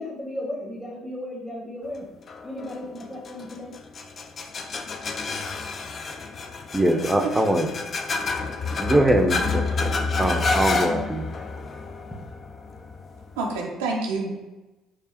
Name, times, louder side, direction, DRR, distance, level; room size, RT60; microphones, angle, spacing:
voice 1, 0.0-3.8, left 1 dB, 15° left, -4 dB, 0.9 m, -35 dB
sound 1, 2.3-13.6, left 3 dB, 45° left, 0.4 m, -29 dB
voice 2, 6.7-7.7 8.8-9.9 10.2-11.3, right 1 dB, 10° right, 6 dB, 0.5 m, -22 dB
voice 3, 13.4-14.3, right 3 dB, 90° right, -1 dB, 0.5 m, -28 dB
4.6 x 2.4 x 2.8 m, 1.1 s
hypercardioid pair, 60°, 0 cm